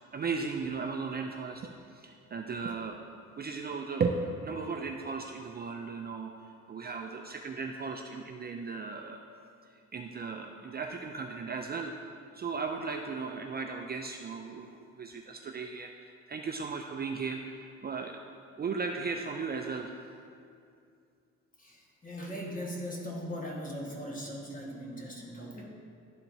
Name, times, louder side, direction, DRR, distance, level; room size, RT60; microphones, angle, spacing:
voice 1, 0.1-3.0 3.4-6.3 6.7-9.2 9.9-11.9 12.3-18.2 18.6-19.9, right 4 dB, 35° right, 3 dB, 0.4 m, -36 dB
voice 2, 21.6-25.6, equal, 25° left, -2 dB, 1.5 m, -39 dB
11.5 x 4.3 x 2.7 m, 2.5 s
cardioid pair, 90°, 30 cm